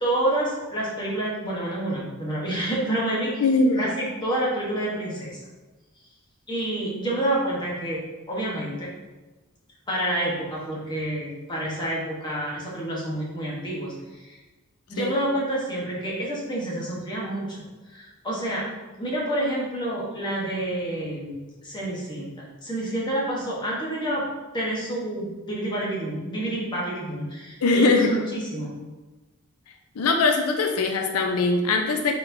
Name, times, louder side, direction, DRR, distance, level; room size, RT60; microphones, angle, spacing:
voice 1, 0.0-3.4 3.8-5.4 6.5-8.0 8.3-8.9 9.9-14.4 14.9-18.7 19.0-24.3 24.5-28.8, right 1 dB, 20° left, -5 dB, 1.0 m, -28 dB
voice 2, 3.4-3.8 15.0-15.1 27.6-28.1 30.0-32.1, left 3 dB, 80° left, 4 dB, 0.5 m, -21 dB
4.2 x 4.2 x 2.6 m, 1.2 s
head